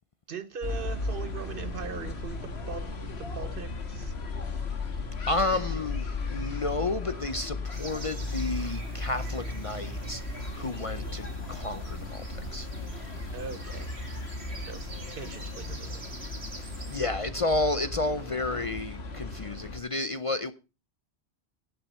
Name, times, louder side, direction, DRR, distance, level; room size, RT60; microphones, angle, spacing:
voice 1, 0.3-4.1 13.3-13.9 14.6-14.8 15.1-16.1, right 6 dB, 60° right, 1.1 m, -40 dB
sound 1, 0.6-19.8, left 3 dB, 80° left, 1.9 m, -36 dB
voice 2, 5.3-12.7 16.6-20.5, left 2 dB, 40° left, 0.6 m, -31 dB
sound 2, 7.7-17.0, right 3 dB, 80° right, 2.2 m, -46 dB
17.5 x 7.9 x 4.2 m
omnidirectional pair, 1.1 m